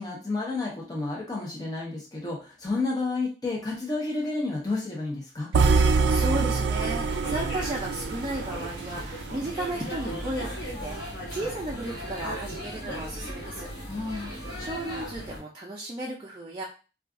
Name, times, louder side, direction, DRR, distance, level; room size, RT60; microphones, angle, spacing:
voice 1, 0.0-5.5 13.9-14.3, left 3 dB, 20° left, -3 dB, 0.7 m, -31 dB
voice 2, 5.5-13.7 14.1-16.6, right 1 dB, 25° right, -3 dB, 0.5 m, -35 dB
sound 1, 5.5-9.7, right 4 dB, 90° right, 0.3 m, -25 dB
sound 2, 6.9-15.4, equal, 65° left, 1.2 m, -37 dB
2.4 x 2.4 x 3.6 m, 0.34 s
head